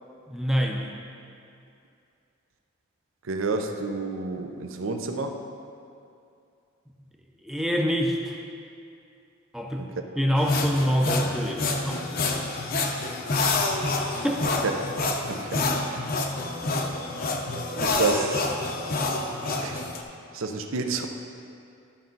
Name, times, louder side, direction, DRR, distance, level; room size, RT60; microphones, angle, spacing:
voice 1, 0.3-0.8 7.4-8.4 9.5-9.9 10.2-12.1 14.2-14.4, equal, ahead, 1 dB, 0.6 m, -26 dB
voice 2, 3.3-5.4 9.8-9.9 13.4-13.7 14.6-15.0 15.3-15.7 17.8-18.4 19.6-19.8 20.3-21.0, right 3 dB, 65° right, 5 dB, 0.6 m, -29 dB
sound 1, 10.4-20.0, left 2 dB, 40° left, 0.6 m, -27 dB
13.0 x 5.4 x 3.9 m, 2.5 s
head